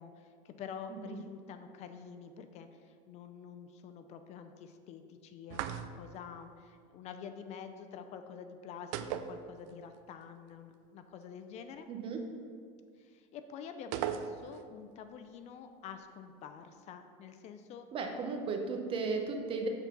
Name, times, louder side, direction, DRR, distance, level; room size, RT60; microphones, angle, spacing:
voice 1, 0.0-11.9 13.0-17.9, left 7 dB, 45° left, 8 dB, 0.5 m, -48 dB
sound 1, 5.5-6.2 8.9-10.0 10.2-10.3 13.9-14.7, right 9 dB, 75° right, 0.5 m, -37 dB
voice 2, 11.9-12.2 17.9-19.7, right 4 dB, 35° right, 3 dB, 0.9 m, -35 dB
7.0 x 3.9 x 5.9 m, 2.1 s
supercardioid pair, 135°, 16 cm